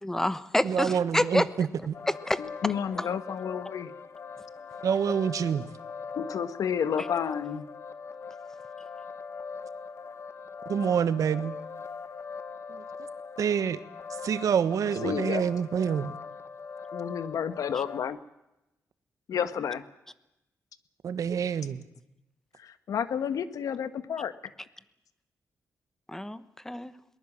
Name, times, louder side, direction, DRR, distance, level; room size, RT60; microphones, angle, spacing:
voice 1, 0.0-1.5 2.1-2.4 3.0-3.1 17.7-17.8 26.1-26.9, left 1 dB, 5° left, 1.1 m, -28 dB
voice 2, 0.6-2.0 4.8-5.7 10.7-11.5 12.7-12.8 13.4-13.8 14.2-16.1 21.0-21.8, right 7 dB, 70° right, 1.3 m, -27 dB
sound 1, 1.9-18.0, left 5 dB, 50° left, 1.6 m, -41 dB
voice 3, 2.4-3.9 6.2-7.6 15.0-15.4 16.9-18.2 19.3-19.8 22.6-24.3, left 8 dB, 75° left, 1.4 m, -31 dB
22.0 x 20.0 x 7.5 m
wide cardioid pair, 125°, 6 cm